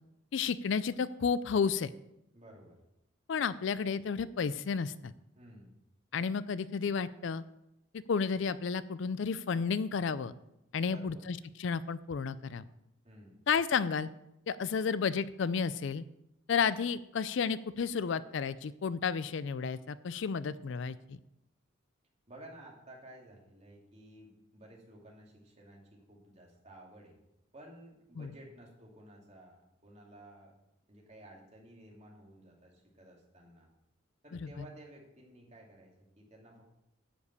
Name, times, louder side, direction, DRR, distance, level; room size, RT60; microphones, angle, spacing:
voice 1, 0.3-1.9 3.3-5.1 6.1-7.4 7.9-10.3 10.7-12.6 13.5-14.1 14.5-16.0 16.5-21.2 28.2-28.3, left 6 dB, 60° left, 16 dB, 0.4 m, -32 dB
voice 2, 2.3-2.8 5.4-5.7 10.8-11.3 13.0-13.4 22.3-27.2 27.5-30.5 30.9-33.7 34.2-36.7, right 1 dB, 30° right, -1 dB, 2.4 m, -54 dB
10.0 x 5.2 x 8.1 m, 0.85 s
head